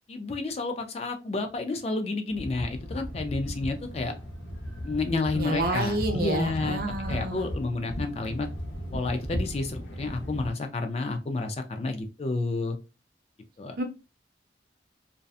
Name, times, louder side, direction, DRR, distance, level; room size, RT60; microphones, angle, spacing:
voice 1, 0.1-4.1 4.8-6.8 7.1-8.5 8.9-12.8 13.6-13.8, left 3 dB, 35° left, 5 dB, 0.3 m, -30 dB
sound 1, 2.3-10.5, equal, 80° left, 0.7 m, -36 dB
voice 2, 5.3-7.5 13.8-13.9, right 2 dB, 50° right, 5 dB, 0.5 m, -29 dB
2.6 x 2.2 x 2.3 m, 0.29 s
head